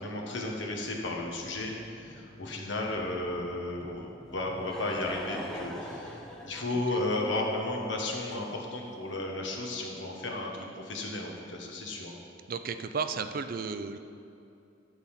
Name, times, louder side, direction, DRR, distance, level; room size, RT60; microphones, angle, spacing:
voice 1, 0.0-12.2, left 2 dB, 75° left, 0 dB, 1.5 m, -34 dB
sound 1, 0.7-7.9, equal, 25° left, 1.3 m, -53 dB
Laughter / Crowd, 4.3-9.0, equal, 5° left, 0.8 m, -43 dB
voice 2, 12.5-14.0, right 5 dB, 50° right, 10 dB, 0.4 m, -34 dB
12.0 x 4.1 x 7.4 m, 2.6 s
head